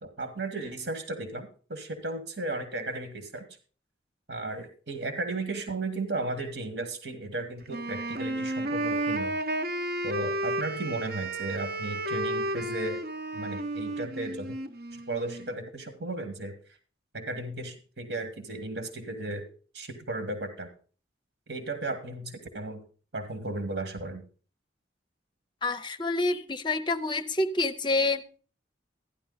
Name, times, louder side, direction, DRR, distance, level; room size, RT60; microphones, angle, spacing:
voice 1, 0.0-3.4 4.3-9.4 10.0-13.0 13.3-14.6 15.1-16.5 17.1-19.5 19.7-20.7 21.5-22.8 23.1-24.2, right 2 dB, 75° right, 7 dB, 1.7 m, -35 dB
Wind instrument woodwind instrument, 7.7-15.5, right 1 dB, 55° right, 0.9 m, -32 dB
voice 2, 25.6-28.4, left 2 dB, 25° left, 10 dB, 0.6 m, -28 dB
13.5 x 10.5 x 3.9 m, 0.39 s
head